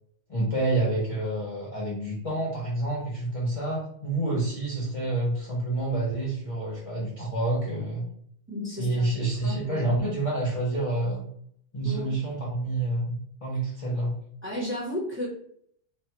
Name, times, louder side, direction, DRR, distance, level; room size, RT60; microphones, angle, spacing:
voice 1, 0.3-8.1 8.8-11.2 11.7-14.1, right 2 dB, 35° left, -6 dB, 0.6 m, -28 dB
voice 2, 8.5-9.2 9.4-9.9 11.8-12.1 14.4-15.3, left 1 dB, 10° right, -6 dB, 0.8 m, -33 dB
3.1 x 2.2 x 2.9 m, 0.65 s
omnidirectional pair, 1.3 m